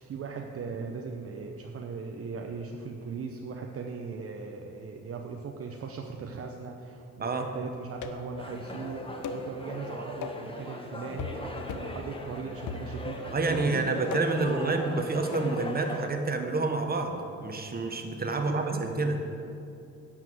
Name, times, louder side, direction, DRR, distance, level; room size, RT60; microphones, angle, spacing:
voice 1, 0.0-14.8 18.3-18.9, right 5 dB, 50° right, 2 dB, 0.9 m, -38 dB
sound 1, 8.0-8.4 9.2-9.5 10.2-10.5 11.2-11.4 11.7-12.0 12.7-13.3 14.1-14.5 15.3-15.6, left 5 dB, 80° left, 0.9 m, -38 dB
sound 2, 8.4-16.1, left 2 dB, 20° left, 1.4 m, -39 dB
voice 2, 13.3-19.2, right 3 dB, 30° right, 5 dB, 1.3 m, -28 dB
11.0 x 5.8 x 7.9 m, 2.8 s
cardioid pair, 90°, 30 cm